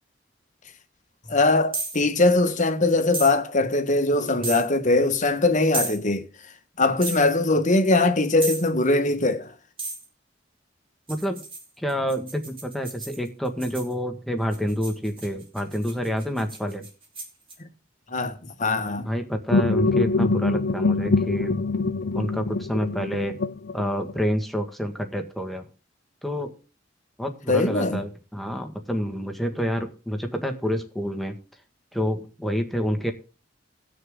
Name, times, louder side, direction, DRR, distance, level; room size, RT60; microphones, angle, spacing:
voice 1, 1.3-6.3 6.8-9.5 18.1-19.1 27.5-28.0, left 2 dB, 40° left, 1.3 m, -21 dB
sound 1, 1.7-2.0 3.1-3.3 4.4-4.7 5.7-6.0 7.0-7.2 8.4-8.7 9.8-10.0 11.1-13.9 14.5-17.5, right 3 dB, 30° right, 3.7 m, -33 dB
voice 2, 11.1-11.4 11.8-16.9 19.0-21.5 22.1-23.3 23.7-25.6 26.2-26.5 27.2-31.4 31.9-33.1, equal, ahead, 1.6 m, -28 dB
sound 2, 19.5-24.3, left 3 dB, 60° left, 0.5 m, -24 dB
20.0 x 6.7 x 3.7 m
head